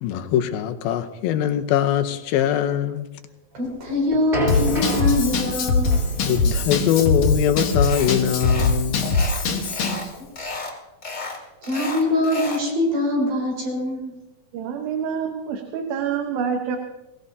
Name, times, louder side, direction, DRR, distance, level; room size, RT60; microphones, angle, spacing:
voice 1, 0.0-3.1 6.2-9.1, left 10 dB, 80° left, 2.6 m, -22 dB
voice 2, 3.5-6.0 9.9-10.1 10.4-10.5 11.6-14.2, left 1 dB, 55° right, 5.8 m, -24 dB
sound 1, 3.7-10.5, left 2 dB, 15° right, 3.4 m, -31 dB
Drum kit / Drum, 4.5-10.1, left 3 dB, 55° left, 2.2 m, -22 dB
sound 2, 7.8-8.1 8.4-8.7 9.0-10.1 10.4-10.7 11.0-12.7, left 3 dB, 25° left, 2.1 m, -33 dB
voice 3, 14.5-16.8, right 7 dB, 80° right, 2.9 m, -27 dB
22.0 x 18.5 x 2.8 m
omnidirectional pair, 4.3 m